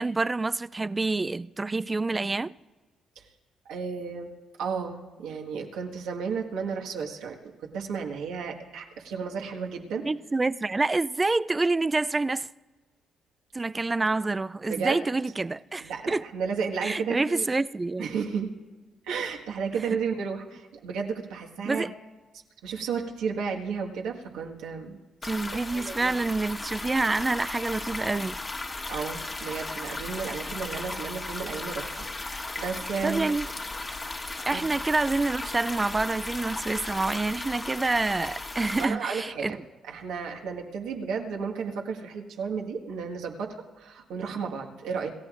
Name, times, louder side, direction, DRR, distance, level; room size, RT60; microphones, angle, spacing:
voice 1, 0.0-2.5 10.0-12.5 13.5-16.2 16.8-18.1 19.9-20.0 21.6-21.9 25.3-28.4 33.0-33.5 34.5-39.6, right 3 dB, 20° right, 0.3 m, -27 dB
voice 2, 3.7-4.3 4.6-10.0 14.7-15.0 15.8-17.5 18.0-18.5 19.0-21.8 22.6-25.0 25.7-26.2 28.9-33.3 34.5-34.6 38.8-39.6 39.9-45.1, right 6 dB, 90° right, 1.6 m, -33 dB
sound 1, 25.2-38.8, left 2 dB, 30° left, 1.3 m, -36 dB
27.0 x 14.5 x 2.5 m
cardioid pair, 90°, 0 cm